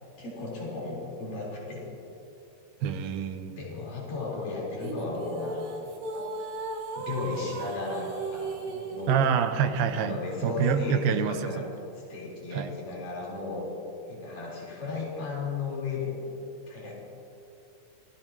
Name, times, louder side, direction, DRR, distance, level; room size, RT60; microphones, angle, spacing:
voice 1, 0.2-1.9 3.5-6.3 7.0-9.3 9.9-11.7 12.1-13.7 14.1-16.9, left 3 dB, 60° left, -6 dB, 5.8 m, -35 dB
voice 2, 2.8-3.6 9.1-11.7 12.5-12.7, right 7 dB, 85° right, 8 dB, 2.6 m, -27 dB
sound 1, 4.8-9.3, right 3 dB, 70° right, 2.9 m, -36 dB
26.5 x 17.5 x 3.0 m, 2.8 s
omnidirectional pair, 4.2 m